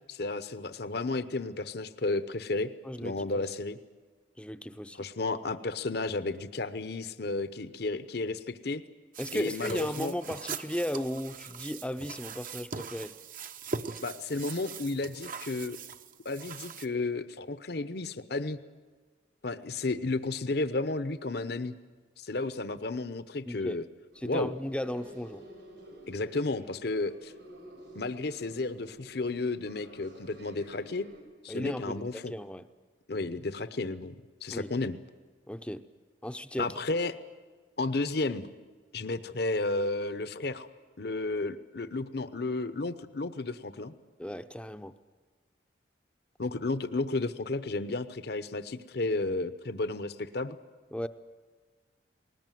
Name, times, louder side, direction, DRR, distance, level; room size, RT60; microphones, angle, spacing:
voice 1, 0.1-2.7 3.0-3.8 5.0-8.8 9.3-10.1 14.0-15.8 16.2-18.6 19.4-21.7 22.2-23.8 24.2-24.5 26.1-27.3 27.9-31.1 31.4-32.3 33.1-34.1 34.4-35.0 36.6-37.2 37.8-38.5 38.9-40.7 41.0-43.9 46.4-50.6, left 3 dB, 60° left, 13 dB, 0.9 m, -32 dB
voice 2, 2.8-3.4 4.4-5.1 9.2-13.1 23.5-23.8 24.2-25.4 31.5-32.7 34.5-34.7 35.5-35.9 36.2-36.7 44.2-44.9 50.9-51.1, equal, 5° left, 10 dB, 0.6 m, -35 dB
sound 1, 9.1-16.9, right 5 dB, 45° right, 0.8 m, -41 dB
sound 2, 24.1-31.2, equal, 85° right, 6.9 m, -51 dB
20.0 x 20.0 x 9.2 m, 1.4 s
head